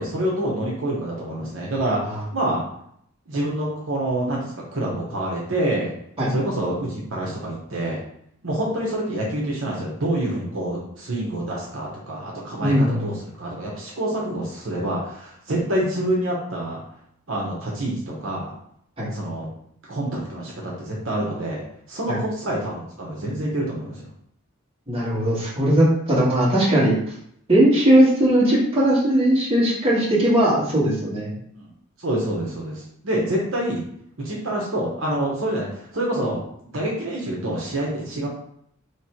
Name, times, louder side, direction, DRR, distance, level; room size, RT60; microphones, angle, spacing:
voice 1, 0.0-2.6 3.3-5.9 6.3-8.0 8.4-16.8 17.3-18.5 19.1-19.5 19.9-21.6 21.9-24.1 31.6-31.7 32.0-33.8 34.2-36.4 36.7-38.3, right 1 dB, 65° right, -4 dB, 1.1 m, -27 dB
voice 2, 12.6-13.1 19.0-19.1 22.1-22.2 24.9-27.0 27.5-31.3, right 1 dB, 25° right, -7 dB, 1.6 m, -18 dB
3.3 x 3.2 x 4.4 m, 0.70 s
head